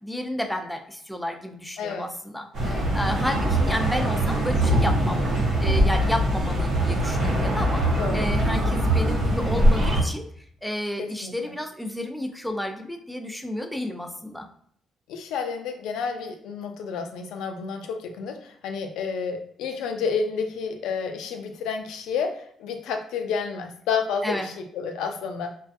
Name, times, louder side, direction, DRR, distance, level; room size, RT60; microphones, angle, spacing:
voice 1, 0.0-5.2 5.6-7.8 8.1-10.3 10.6-14.5 24.2-24.5, left 1 dB, 5° left, 3 dB, 0.4 m, -31 dB
voice 2, 1.8-2.1 2.6-3.0 8.0-8.3 11.0-11.5 15.1-25.5, left 5 dB, 90° left, 5 dB, 0.3 m, -30 dB
sound 1, 2.5-10.0, right 1 dB, 80° right, 1.0 m, -22 dB
2.3 x 2.3 x 2.5 m, 0.64 s
cardioid pair, 90°, 0 cm